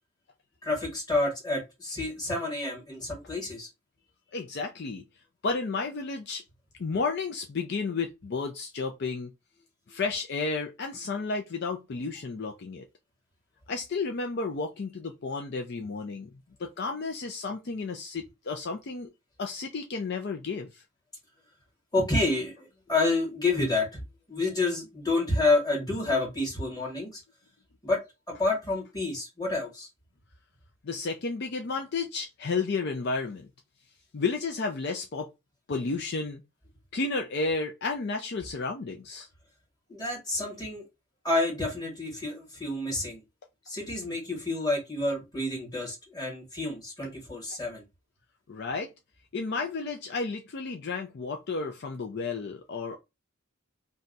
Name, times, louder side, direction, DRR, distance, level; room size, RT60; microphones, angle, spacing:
voice 1, 0.6-3.7 21.9-24.0 24.3-27.2 27.8-28.0 28.3-29.9 39.9-40.8 41.2-43.2 43.7-47.8, left 2 dB, 20° left, 1.5 m, -29 dB
voice 2, 4.3-5.0 5.4-6.4 6.8-9.3 9.9-12.8 13.7-16.3 16.6-19.1 19.4-20.8 30.8-33.5 34.1-35.3 35.7-36.4 36.9-39.3 48.5-48.9 49.3-53.0, left 4 dB, 50° left, 0.4 m, -32 dB
2.7 x 2.2 x 3.9 m
head